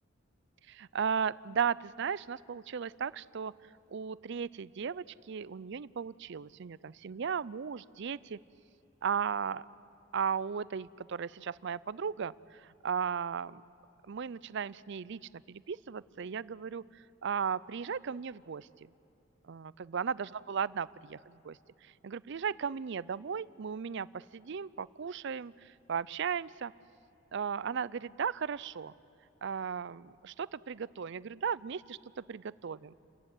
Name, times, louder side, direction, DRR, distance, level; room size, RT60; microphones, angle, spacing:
voice 1, 0.7-3.5 3.9-8.4 9.0-9.7 10.1-13.6 14.1-18.9 19.4-26.7 27.3-28.9 29.4-33.0, right 7 dB, 65° right, 20 dB, 0.5 m, -36 dB
29.5 x 15.5 x 9.8 m, 2.8 s
head